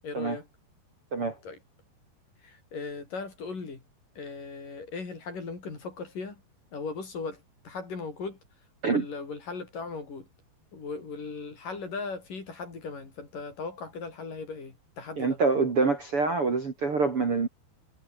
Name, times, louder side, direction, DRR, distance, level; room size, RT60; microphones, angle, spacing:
voice 1, 0.0-0.5 1.4-1.6 2.4-3.8 4.2-6.4 6.7-8.4 8.9-10.3 10.7-15.4, left 4 dB, 50° left, 7.1 m, -38 dB
voice 2, 15.2-17.5, right 4 dB, 35° right, 3.0 m, -26 dB
omnidirectional pair, 5.1 m